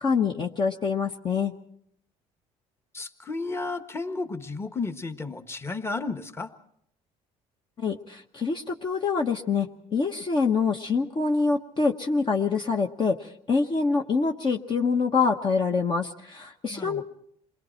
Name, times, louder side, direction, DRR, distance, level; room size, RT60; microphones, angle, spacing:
voice 1, 0.0-1.5 7.8-17.0, left 4 dB, 40° left, 3 dB, 1.2 m, -25 dB
voice 2, 2.9-6.5 16.7-17.0, left 3 dB, 20° left, 8 dB, 1.4 m, -33 dB
27.5 x 21.0 x 4.5 m, 0.68 s
cardioid pair, 105°, 13 cm